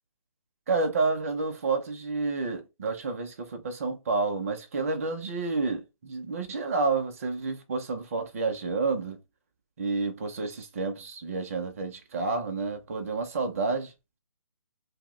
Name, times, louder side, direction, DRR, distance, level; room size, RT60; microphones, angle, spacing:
voice 1, 0.7-9.2 9.8-13.9, right 3 dB, 25° right, 0.5 m, -29 dB
2.6 x 2.1 x 3.6 m
hypercardioid pair, 160°, 18 cm